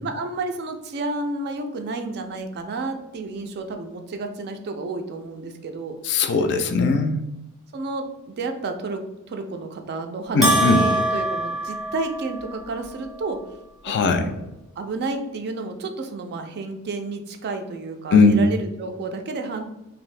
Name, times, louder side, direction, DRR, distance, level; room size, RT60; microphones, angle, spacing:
voice 1, 0.0-6.0 7.7-13.4 14.1-14.5 14.8-19.6, right 3 dB, 50° right, 6 dB, 0.3 m, -31 dB
voice 2, 6.0-7.2 10.3-10.8 13.8-14.3 18.1-18.4, left 3 dB, 50° left, 7 dB, 0.3 m, -18 dB
Bell, 10.4-12.6, right 1 dB, ahead, 0.5 m, -23 dB
2.6 x 2.4 x 3.2 m, 0.92 s
head